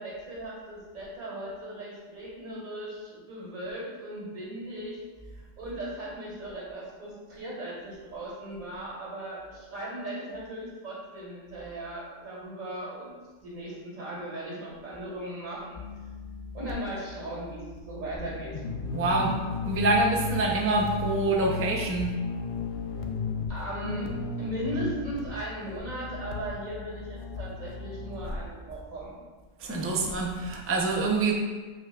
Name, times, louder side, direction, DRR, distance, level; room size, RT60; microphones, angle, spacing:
voice 1, 0.0-5.0 5.3-13.2 13.4-15.8 16.5-18.6 23.5-29.2, right 1 dB, 85° right, -6 dB, 2.5 m, -37 dB
sound 1, 15.7-28.2, left 4 dB, 55° left, 0.7 m, -35 dB
voice 2, 18.9-19.3 19.7-22.1 29.6-31.3, right 2 dB, 20° right, -1 dB, 0.4 m, -26 dB
7.1 x 5.7 x 2.3 m, 1.3 s
omnidirectional pair, 1.3 m